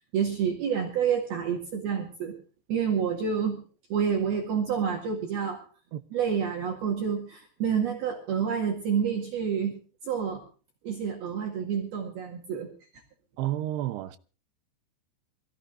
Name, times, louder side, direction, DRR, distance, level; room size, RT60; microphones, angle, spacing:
voice 1, 0.0-2.4 2.7-3.6 3.9-5.6 6.1-9.7 10.0-10.4 10.8-12.7, right 7 dB, 55° right, 3.5 m, -28 dB
voice 2, 13.4-14.2, right 13 dB, 80° right, 2.4 m, -30 dB
26.5 x 15.5 x 2.6 m
omnidirectional pair, 5.9 m